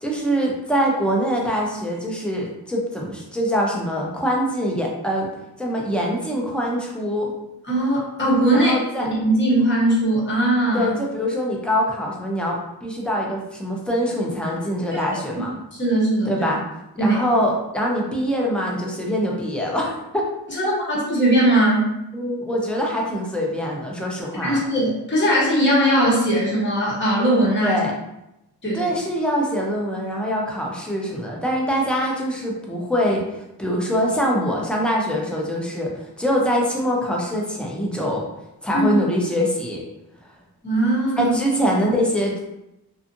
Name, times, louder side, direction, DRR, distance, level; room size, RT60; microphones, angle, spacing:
voice 1, 0.0-5.3 5.6-7.3 8.5-9.1 10.7-15.5 16.2-16.6 17.0-20.3 20.6-20.7 22.1-24.6 27.6-27.9 28.7-38.2 38.6-39.8 41.2-42.4, equal, ahead, -2 dB, 0.6 m, -24 dB
voice 2, 7.7-8.7 9.2-10.9 15.7-16.3 17.0-17.2 20.5-21.9 24.4-27.8 28.6-28.9 38.7-38.9 40.6-41.3, right 1 dB, 30° left, -6 dB, 1.0 m, -19 dB
2.6 x 2.4 x 2.6 m, 0.88 s
cardioid pair, 55°, 41 cm